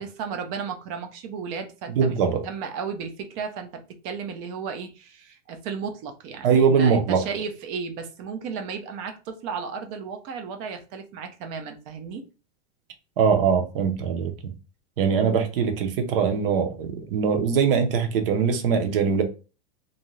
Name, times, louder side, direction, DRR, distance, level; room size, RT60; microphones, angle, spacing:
voice 1, 0.0-12.2, right 6 dB, 25° right, 0.4 m, -34 dB
voice 2, 1.9-2.4 6.4-7.2 13.2-14.5 15.0-19.2, right 6 dB, 60° right, 0.7 m, -22 dB
2.6 x 2.3 x 3.0 m
supercardioid pair, 160°, 31 cm